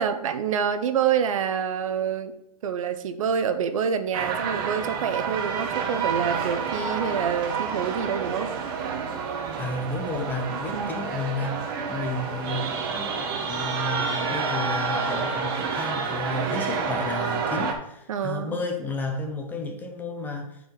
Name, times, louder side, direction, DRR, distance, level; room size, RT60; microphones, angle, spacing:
voice 1, 0.0-2.3 2.6-8.5 10.7-10.9 18.1-18.6, right 7 dB, 55° right, 0.7 m, -27 dB
sound 1, 4.1-17.7, right 5 dB, 35° right, 1.0 m, -29 dB
voice 2, 9.6-20.6, left 3 dB, 10° left, 0.6 m, -32 dB
10.5 x 4.6 x 3.8 m
hypercardioid pair, 145°, 20 cm